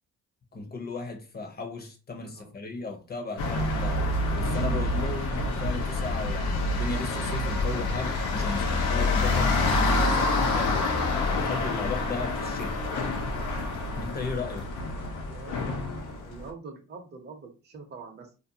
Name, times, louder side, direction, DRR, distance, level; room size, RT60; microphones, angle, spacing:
voice 1, 0.5-4.1 4.3-12.9 14.0-14.7, left 3 dB, 30° left, 0.7 m, -36 dB
sound 1, 3.4-16.5, left 2 dB, 85° left, 0.6 m, -27 dB
voice 2, 15.2-15.6 16.2-18.4, right 4 dB, 35° right, 0.6 m, -44 dB
2.5 x 2.2 x 2.7 m
cardioid pair, 90°, 30 cm